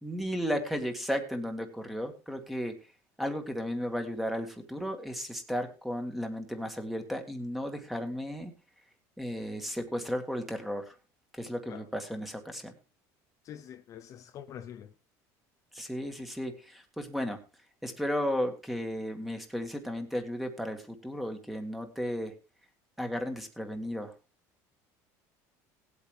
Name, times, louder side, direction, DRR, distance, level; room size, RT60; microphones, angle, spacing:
voice 1, 0.0-2.8 3.2-8.5 9.2-11.0 11.3-12.7 15.7-17.4 17.8-22.3 23.0-24.1, equal, ahead, 2.0 m, -34 dB
voice 2, 13.4-14.9, left 9 dB, 40° left, 0.7 m, -45 dB
19.0 x 8.2 x 3.3 m
cardioid pair, 135°, 8 cm